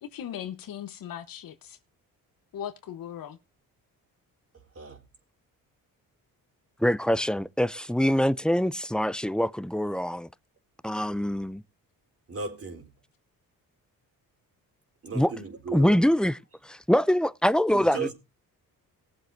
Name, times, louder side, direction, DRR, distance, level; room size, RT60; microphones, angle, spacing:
voice 1, 0.0-1.8 2.5-3.4, left 10 dB, 70° left, 1.1 m, -38 dB
voice 2, 6.8-10.3 10.8-11.6 15.2-15.3 15.7-16.4 16.6-18.1, equal, ahead, 0.5 m, -24 dB
voice 3, 12.3-12.9 15.0-16.1 17.7-18.1, right 4 dB, 40° right, 4.0 m, -36 dB
19.5 x 7.6 x 2.7 m
cardioid pair, 90°, 35 cm